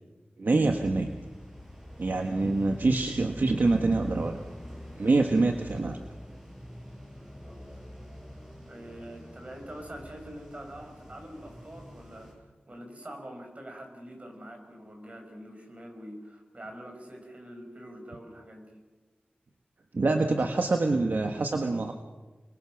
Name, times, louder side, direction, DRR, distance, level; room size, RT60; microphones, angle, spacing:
voice 1, 0.4-1.1 2.0-4.4 5.0-6.0 19.9-21.9, right 3 dB, 65° right, 4 dB, 1.5 m, -25 dB
sound 1, 0.6-12.3, equal, 15° right, 7.4 m, -45 dB
voice 2, 7.3-7.8 8.7-12.3 12.7-18.8, right 1 dB, 40° right, 3 dB, 6.3 m, -45 dB
29.5 x 22.5 x 6.4 m, 1.3 s
wide cardioid pair, 80°, 3 cm